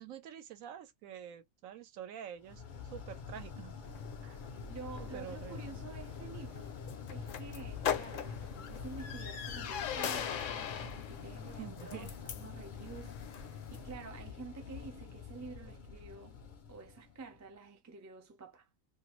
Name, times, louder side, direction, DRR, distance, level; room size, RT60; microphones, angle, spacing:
voice 1, 0.0-2.6 2.9-3.8 4.2-4.4 5.0-5.8 11.6-12.1, right 9 dB, 80° right, 1.1 m, -47 dB
sound 1, 2.4-17.5, left 5 dB, 50° left, 0.6 m, -46 dB
sound 2, 3.8-13.9, left 8 dB, 70° left, 1.0 m, -42 dB
voice 2, 4.7-6.8 7.1-16.4 16.7-18.7, right 4 dB, 25° right, 0.3 m, -49 dB
2.7 x 2.4 x 3.0 m
omnidirectional pair, 1.4 m